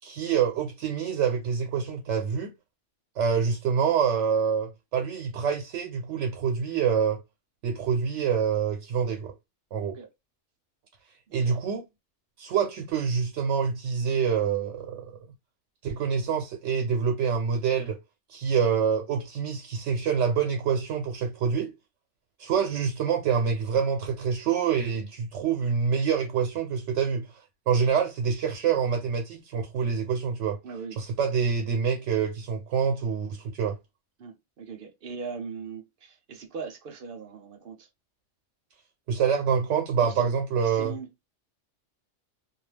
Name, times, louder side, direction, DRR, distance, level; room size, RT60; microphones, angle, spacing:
voice 1, 0.0-2.5 3.2-7.2 7.6-9.3 9.7-10.0 11.3-11.8 12.4-15.1 15.8-18.0 18.3-21.7 22.4-27.3 27.7-30.6 31.0-33.8 39.1-40.9, right 6 dB, 85° right, 0.9 m, -26 dB
voice 2, 11.3-11.6 22.5-22.6 30.6-31.0 34.2-37.9 40.0-40.3 40.6-41.3, right 5 dB, 55° right, 0.7 m, -40 dB
2.3 x 2.2 x 3.2 m
omnidirectional pair, 1.2 m